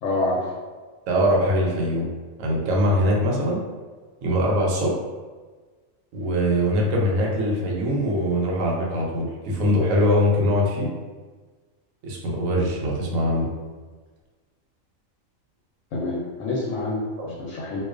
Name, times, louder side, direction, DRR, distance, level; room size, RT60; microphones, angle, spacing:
voice 1, 0.0-0.6 15.9-17.0 17.4-17.8, left 2 dB, 70° left, -4 dB, 0.9 m, -26 dB
voice 2, 1.1-2.1 2.4-3.6 4.2-4.9 6.1-10.9 12.0-13.5 17.2-17.3, equal, 75° right, -2 dB, 1.0 m, -22 dB
2.3 x 2.3 x 2.3 m, 1.4 s
omnidirectional pair, 1.4 m